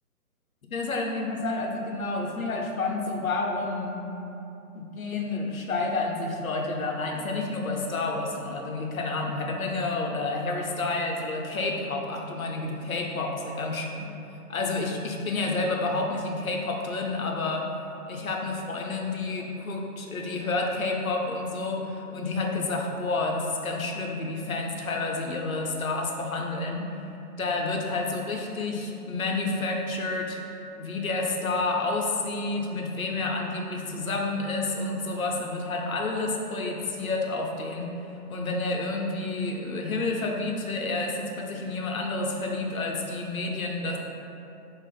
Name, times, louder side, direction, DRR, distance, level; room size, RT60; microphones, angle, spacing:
voice 1, 0.7-4.0 4.7-14.1 14.5-17.7 18.1-26.9 27.4-30.4 30.8-38.0 38.3-44.0, left 3 dB, 60° left, 0 dB, 0.6 m, -29 dB
6.3 x 2.5 x 2.3 m, 2.9 s
hypercardioid pair, 175°, 47 cm